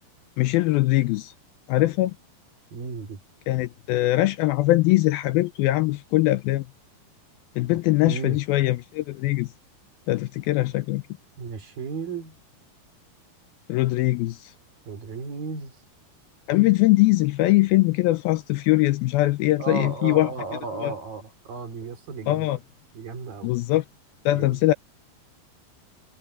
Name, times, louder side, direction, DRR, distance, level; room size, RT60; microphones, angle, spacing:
voice 1, 0.4-1.3 1.7-2.1 3.5-6.7 7.6-9.5 10.1-11.0 13.7-14.5 16.5-20.3 20.8-20.9 22.3-22.6 23.4-23.8 24.3-24.7, left 18 dB, 80° left, 2.3 m, -21 dB
voice 2, 2.7-3.2 7.7-7.8 8.1-8.4 11.4-12.4 14.9-15.7 19.6-22.6 22.9-23.5 24.3-24.6, right 5 dB, 60° right, 4.8 m, -34 dB
omnidirectional pair, 4.7 m